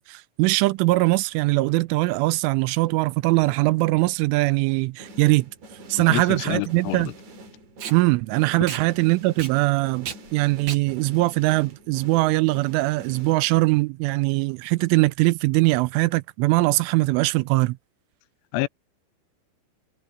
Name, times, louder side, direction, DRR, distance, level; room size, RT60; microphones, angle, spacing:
voice 1, 0.0-5.5 5.9-7.1 7.9-17.8, right 21 dB, 85° right, 3.0 m, -21 dB
sound 1, 5.0-13.8, right 1 dB, 45° right, 3.5 m, -46 dB
Packing tape duct tape, 5.0-12.5, right 8 dB, 60° right, 2.0 m, -39 dB
voice 2, 6.0-7.1 18.5-18.7, left 22 dB, 85° left, 2.9 m, -28 dB
omnidirectional pair, 5.7 m